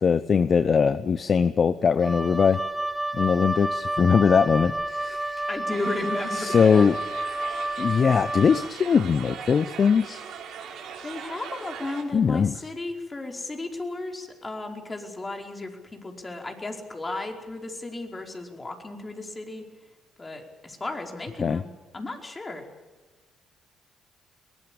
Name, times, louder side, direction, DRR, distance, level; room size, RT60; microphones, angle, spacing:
voice 1, 0.0-2.6 3.1-5.5 6.3-6.9 7.8-10.2 12.1-12.5 21.4-21.6, left 6 dB, 50° left, 14 dB, 0.8 m, -21 dB
Wind instrument woodwind instrument, 2.0-8.7, right 1 dB, 5° right, 1.6 m, -30 dB
voice 2, 5.5-6.9 11.0-19.7 20.2-21.7 21.9-22.7, left 2 dB, 25° left, 3 dB, 4.9 m, -34 dB
sound 1, 5.7-12.0, right 7 dB, 70° right, 5.1 m, -40 dB
22.5 x 19.5 x 8.9 m, 1.2 s
hypercardioid pair, 55°, 0 cm